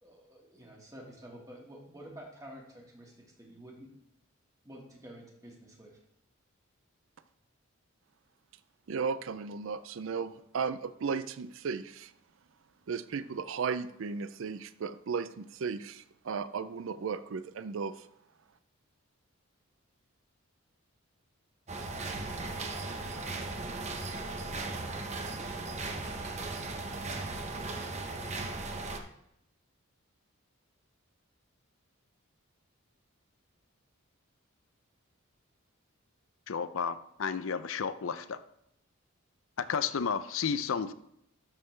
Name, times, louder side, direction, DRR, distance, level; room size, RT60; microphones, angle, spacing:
voice 1, 0.0-3.9 4.6-6.0, right 1 dB, 15° right, -1 dB, 1.7 m, -50 dB
voice 2, 8.9-12.1 12.9-18.1, right 5 dB, 65° right, 14 dB, 0.4 m, -35 dB
sound 1, 21.7-29.0, right 3 dB, 30° right, 0.8 m, -37 dB
voice 3, 36.5-38.4 39.6-40.9, left 6 dB, 65° left, 13 dB, 0.5 m, -32 dB
12.5 x 6.4 x 3.2 m, 0.77 s
head